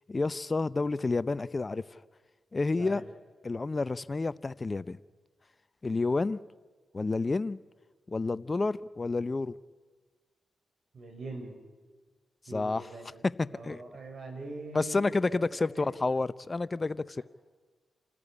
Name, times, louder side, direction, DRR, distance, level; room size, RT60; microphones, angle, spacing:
voice 1, 0.1-1.8 2.5-3.0 3.4-5.0 5.8-6.4 6.9-7.6 8.1-9.5 12.5-12.8 13.6-13.8 14.7-17.2, left 3 dB, 40° left, 0.6 m, -29 dB
voice 2, 10.9-11.6 12.5-13.2 13.5-15.0 15.3-15.9, right 2 dB, 65° right, 5.0 m, -43 dB
28.5 x 13.5 x 9.9 m
supercardioid pair, 45°, 0 cm